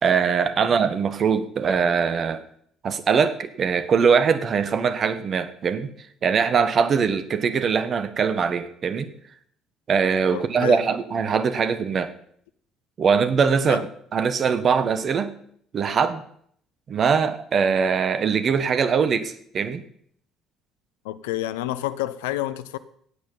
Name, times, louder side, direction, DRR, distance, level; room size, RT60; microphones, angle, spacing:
voice 1, 0.0-2.4 2.8-5.9 6.2-9.1 9.9-12.1 13.0-15.3 15.7-16.2 16.9-19.8, right 6 dB, 45° right, 12 dB, 1.4 m, -22 dB
voice 2, 10.3-10.8 13.6-13.8 21.0-22.8, left 14 dB, 75° left, 14 dB, 0.6 m, -29 dB
16.0 x 9.2 x 5.5 m, 0.65 s
figure-of-eight pair, 55°, 0 cm